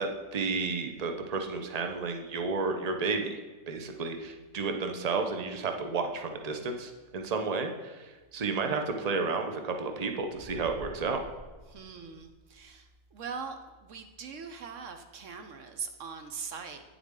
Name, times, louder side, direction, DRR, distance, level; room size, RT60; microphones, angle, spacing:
voice 1, 0.0-3.4 3.7-11.2, right 4 dB, 40° right, 5 dB, 0.6 m, -32 dB
sound 1, 10.3-12.6, left 1 dB, 20° right, 1.8 m, -49 dB
voice 2, 11.7-16.8, right 5 dB, 65° right, 6 dB, 0.9 m, -41 dB
9.5 x 7.2 x 3.7 m, 1.3 s
omnidirectional pair, 1.6 m